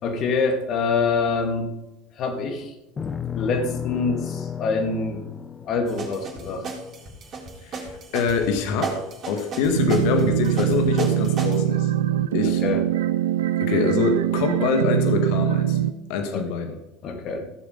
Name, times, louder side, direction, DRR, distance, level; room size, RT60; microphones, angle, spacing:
voice 1, 0.0-1.7 2.2-2.8 3.4-5.2 5.6-6.7 12.4-12.8 16.3-16.4 17.0-17.5, left 4 dB, 45° left, 5 dB, 2.3 m, -25 dB
sound 1, 3.0-7.4, left 8 dB, 25° left, 0.7 m, -33 dB
sound 2, 5.9-11.6, right 4 dB, 40° right, 3.9 m, -34 dB
voice 2, 7.6-9.0 9.3-11.9 12.3-12.6 13.6-15.8 16.1-16.8, left 5 dB, 65° left, 6 dB, 1.6 m, -24 dB
sound 3, 9.7-15.9, right 12 dB, 75° right, 0.5 m, -23 dB
16.0 x 7.2 x 5.2 m, 0.93 s
hypercardioid pair, 75°, 0 cm